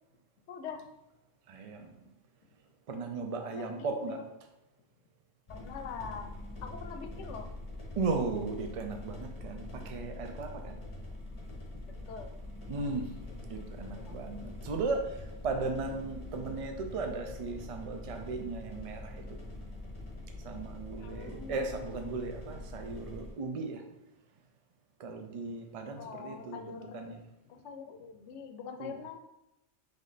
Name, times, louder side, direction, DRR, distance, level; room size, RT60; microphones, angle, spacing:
voice 1, 0.5-0.8 3.5-4.2 5.5-6.3 6.6-7.5 10.8-10.9 12.1-12.3 13.9-14.4 21.0-21.8 26.0-27.2 27.5-29.2, left 6 dB, 85° left, 6 dB, 0.9 m, -44 dB
voice 2, 1.5-2.1 2.9-4.2 8.0-10.8 12.7-13.1 13.5-19.4 20.4-23.8 25.0-27.2 28.8-29.0, right 3 dB, 50° right, 4 dB, 0.4 m, -36 dB
sound 1, 5.5-23.3, left 1 dB, 30° left, 0.9 m, -44 dB
3.3 x 3.2 x 3.9 m, 0.93 s
omnidirectional pair, 1.2 m